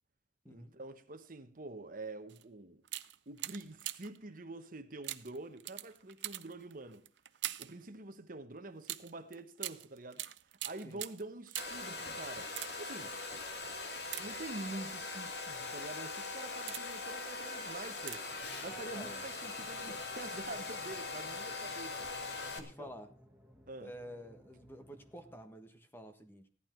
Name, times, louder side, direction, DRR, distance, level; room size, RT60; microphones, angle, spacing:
voice 1, 0.5-2.8 3.3-7.1 7.6-10.2 10.6-13.2 14.2-18.3 18.6-22.1 22.6-22.9 23.7-23.9, right 2 dB, 50° right, 1.2 m, -46 dB
sound 1, 2.3-2.5 2.8-4.2 5.0-7.8 8.8-11.9 12.4-13.0 14.0-14.8 15.5-15.8 16.3-17.1 18.0-18.4 18.7-18.8, right 14 dB, 85° right, 0.7 m, -44 dB
Domestic sounds home sounds, 11.6-22.6, left 3 dB, 65° left, 2.2 m, -41 dB
sound 2, 18.3-25.4, equal, 10° right, 1.7 m, -61 dB
voice 2, 22.5-23.1 23.8-26.5, equal, 15° left, 1.4 m, -50 dB
16.0 x 11.5 x 4.5 m
head